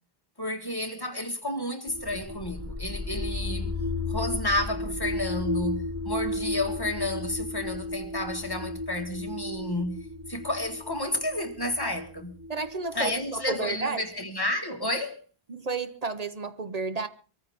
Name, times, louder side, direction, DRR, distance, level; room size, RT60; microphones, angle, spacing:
voice 1, 0.4-3.7 4.1-10.0 10.3-12.3 12.9-15.2, left 1 dB, 20° left, 1.8 m, -31 dB
sound 1, 1.9-13.7, left 2 dB, 15° right, 3.5 m, -34 dB
voice 2, 12.5-14.0 15.5-17.1, right 4 dB, 40° right, 1.0 m, -32 dB
24.0 x 14.0 x 3.6 m
omnidirectional pair, 1.0 m